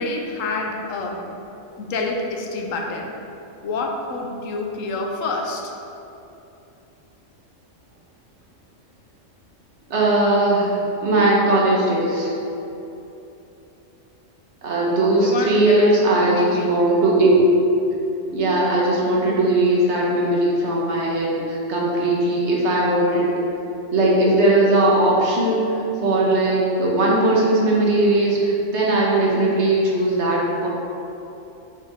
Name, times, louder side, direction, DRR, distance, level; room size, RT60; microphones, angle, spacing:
voice 1, 0.0-1.3 1.8-3.1 3.6-5.7 15.2-16.7, left 2 dB, 85° left, 2 dB, 1.1 m, -27 dB
voice 2, 9.9-12.4 14.6-17.4 18.3-23.3 23.9-25.7 26.0-30.7, right 2 dB, 60° right, -4 dB, 1.2 m, -19 dB
6.0 x 4.5 x 3.5 m, 2.9 s
omnidirectional pair, 1.3 m